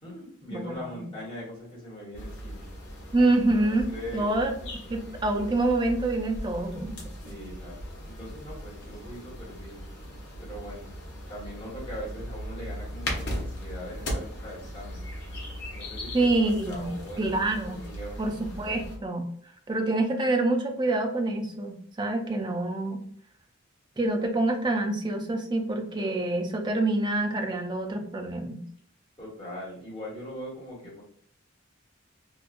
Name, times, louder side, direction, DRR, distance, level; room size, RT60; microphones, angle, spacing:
voice 1, 0.0-2.6 3.5-4.3 7.2-7.8 8.0-9.8 10.4-11.0 11.3-15.1 15.7-17.4 17.7-18.2 29.2-31.0, equal, 25° left, -7 dB, 1.2 m, -41 dB
voice 2, 0.5-1.1 3.1-4.5 4.9-7.0 16.1-17.8 18.2-19.2 19.7-23.0 24.0-28.6, right 2 dB, 20° right, 3 dB, 0.4 m, -26 dB
sound 1, 2.1-19.0, equal, 55° left, 0.7 m, -38 dB
2.9 x 2.3 x 2.4 m, 0.62 s
head